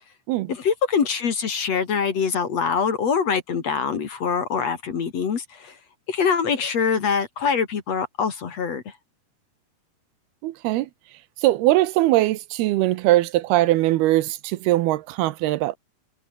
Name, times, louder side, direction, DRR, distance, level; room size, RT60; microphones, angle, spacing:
voice 1, 0.5-5.8 6.1-8.9, left 6 dB, 45° left, 2.9 m, -24 dB
voice 2, 10.4-10.9 11.4-15.7, right 16 dB, 80° right, 2.8 m, -21 dB
omnidirectional pair, 4.6 m